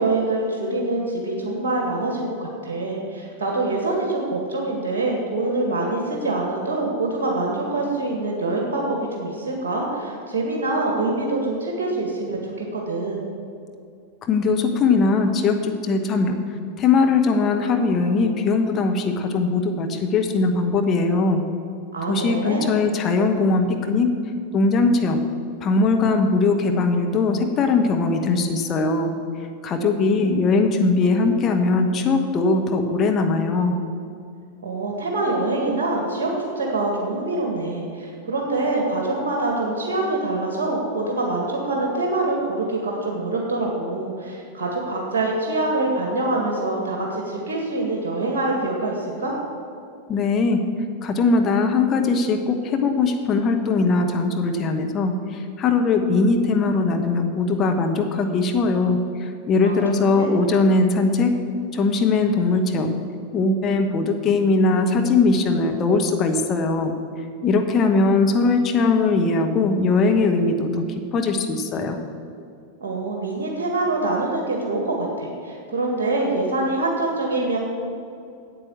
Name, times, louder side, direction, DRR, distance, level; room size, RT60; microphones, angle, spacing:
voice 1, 0.0-13.2 21.9-22.7 29.8-30.4 34.6-49.3 59.6-60.3 72.8-77.6, right 2 dB, 55° right, 0 dB, 1.9 m, -25 dB
voice 2, 14.3-16.4 16.8-21.4 22.1-24.1 24.5-25.2 25.6-29.1 29.6-33.7 50.1-50.7 51.0-61.3 61.7-62.9 63.3-66.9 67.4-70.8 71.1-72.0, left 3 dB, 30° left, 4 dB, 1.2 m, -20 dB
9.2 x 8.3 x 7.4 m, 2.4 s
figure-of-eight pair, 90°, 0 cm